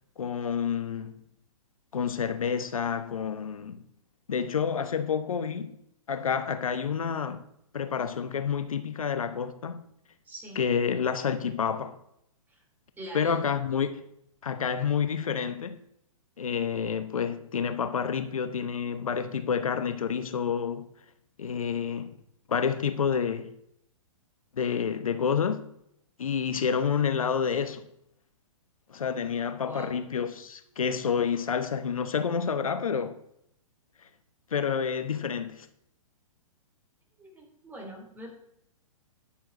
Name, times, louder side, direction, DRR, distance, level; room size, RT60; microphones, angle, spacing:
voice 1, 0.2-1.1 1.9-3.8 4.3-5.8 6.1-7.5 7.7-9.8 10.6-12.0 13.1-13.9 14.4-15.8 16.4-20.9 21.4-22.1 22.5-23.5 24.5-25.7 26.2-27.8 28.9-33.2 34.5-35.7, left 7 dB, 75° left, 1.0 m, -29 dB
voice 2, 10.2-10.6 12.5-12.6 13.0-13.4 29.6-30.0 37.2-38.3, right 1 dB, 10° right, 3.0 m, -43 dB
10.5 x 7.3 x 5.2 m
hypercardioid pair, 120°, 18 cm